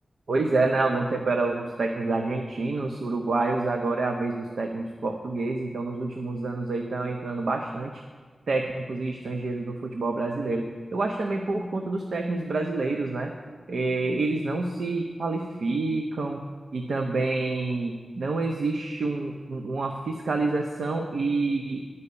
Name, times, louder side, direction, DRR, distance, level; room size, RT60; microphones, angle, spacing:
voice 1, 0.3-8.0 8.5-13.3 13.7-16.4 16.7-21.8, right 3 dB, 80° right, 3 dB, 0.7 m, -28 dB
10.5 x 5.5 x 8.4 m, 1.5 s
wide cardioid pair, 120°, 0 cm